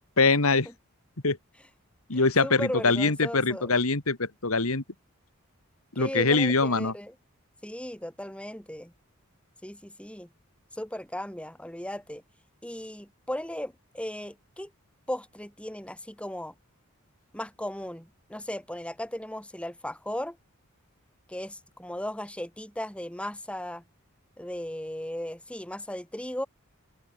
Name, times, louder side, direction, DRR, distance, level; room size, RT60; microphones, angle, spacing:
voice 1, 0.2-0.7 1.2-1.4 2.1-4.8 6.0-6.9, left 3 dB, 80° left, 2.2 m, -23 dB
voice 2, 2.1-3.7 6.0-7.1 7.6-8.9 9.6-10.3 10.7-12.2 12.6-14.7 15.1-16.5 17.3-20.4 21.3-23.8 24.4-26.5, left 1 dB, 5° left, 3.4 m, -36 dB
open air
head